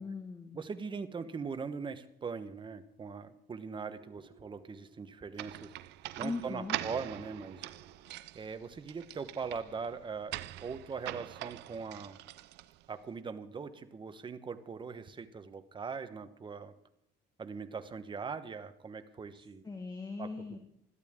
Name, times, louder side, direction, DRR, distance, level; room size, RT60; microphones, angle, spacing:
voice 1, 0.0-0.6 6.2-6.8 19.6-20.6, left 3 dB, 25° left, 4 dB, 1.7 m, -39 dB
voice 2, 0.5-5.7 6.2-7.7 8.3-12.2 12.9-16.7 17.4-19.6 20.2-20.3, right 5 dB, 30° right, 10 dB, 1.1 m, -41 dB
sound 1, 3.9-8.5, right 4 dB, 50° right, 3.0 m, -60 dB
sound 2, 5.4-13.0, right 16 dB, 85° right, 0.5 m, -43 dB
21.0 x 13.0 x 3.7 m, 0.71 s
cardioid pair, 110°, 17 cm